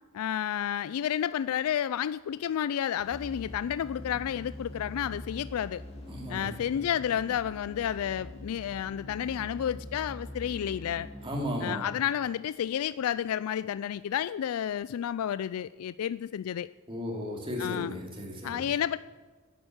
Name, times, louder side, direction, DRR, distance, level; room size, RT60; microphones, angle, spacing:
voice 1, 0.1-5.8 6.3-11.1 11.6-16.7 17.6-18.0 18.4-19.0, left 9 dB, 75° left, 16 dB, 0.3 m, -31 dB
sound 1, 3.0-11.4, left 1 dB, 30° left, 2.4 m, -44 dB
voice 2, 6.1-6.5 11.2-11.8 16.9-18.7, equal, 25° right, -1 dB, 2.9 m, -35 dB
11.0 x 9.1 x 8.8 m, 1.4 s
head